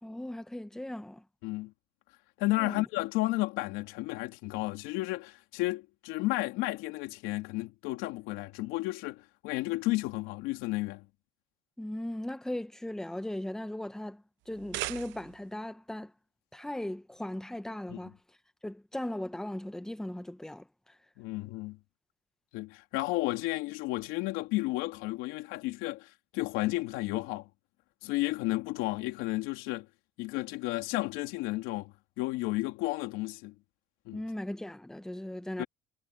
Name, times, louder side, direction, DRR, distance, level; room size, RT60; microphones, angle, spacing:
voice 1, 0.0-1.2 2.6-2.8 11.8-16.1 16.5-18.2 18.6-20.7 34.1-35.6, left 1 dB, 5° left, 1.0 m, -38 dB
voice 2, 2.4-11.0 17.9-18.0 21.2-21.8 22.5-27.5 28.0-29.9 30.2-33.5 34.0-34.2 35.6-35.7, left 20 dB, 90° left, 3.5 m, -32 dB
sound 1, 14.4-15.6, right 18 dB, 70° right, 0.8 m, -38 dB
cardioid pair, 145°, 20 cm